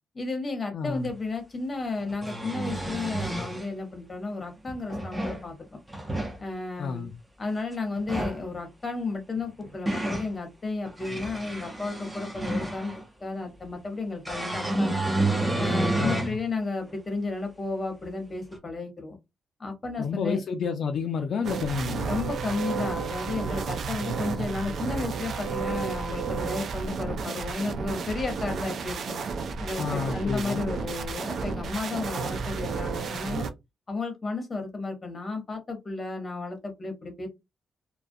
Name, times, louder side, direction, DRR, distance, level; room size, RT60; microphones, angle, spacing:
voice 1, 0.1-5.5 6.4-7.1 7.4-12.9 13.2-15.0 15.5-19.1 19.6-20.4 22.1-29.2 29.6-33.5 33.9-37.3, left 3 dB, 25° left, 0.8 m, -33 dB
voice 2, 0.7-1.1 6.8-7.1 16.0-16.4 20.0-22.1 29.8-30.7, left 5 dB, 60° left, 0.3 m, -30 dB
sound 1, 1.0-1.1 2.0-3.7 4.7-5.4 5.9-6.4 8.0-8.4 9.4-10.3 10.9-13.0 14.2-16.4 16.9-17.0 18.5-18.6, right 2 dB, 10° right, 0.6 m, -30 dB
sound 2, 21.4-33.5, right 5 dB, 65° right, 0.4 m, -32 dB
2.3 x 2.1 x 2.5 m
cardioid pair, 120°, 0 cm